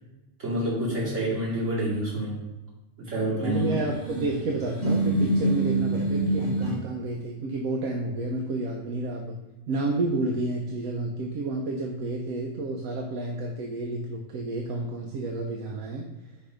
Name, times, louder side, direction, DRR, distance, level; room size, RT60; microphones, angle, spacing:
voice 1, 0.4-2.5 3.1-3.8, right 1 dB, 60° right, -7 dB, 2.7 m, -28 dB
voice 2, 3.4-9.4 9.7-16.1, right 2 dB, 80° right, 1 dB, 1.2 m, -30 dB
sound 1, 3.5-6.8, right 1 dB, 30° left, 1.6 m, -26 dB
5.4 x 4.5 x 5.0 m, 1.1 s
omnidirectional pair, 1.4 m